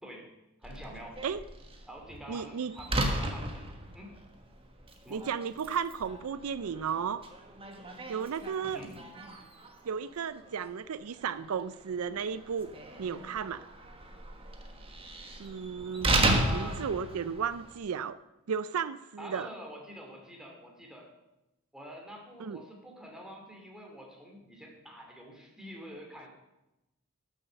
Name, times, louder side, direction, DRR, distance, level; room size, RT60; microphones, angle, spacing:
voice 1, 0.6-1.2 1.9-4.1 5.0-5.2 8.7-8.9 16.2-16.8 19.2-21.1 21.7-26.3, equal, 5° right, 0 dB, 2.5 m, -46 dB
Slam, 0.6-17.8, right 2 dB, 25° right, 1.3 m, -35 dB
voice 2, 2.3-2.7 5.1-7.2 8.1-8.8 9.8-12.7 13.0-13.6 15.4-16.1 16.5-18.2 18.5-19.5 22.4-22.6, right 7 dB, 85° right, 15 dB, 0.4 m, -34 dB
12.0 x 7.3 x 6.9 m, 0.97 s
head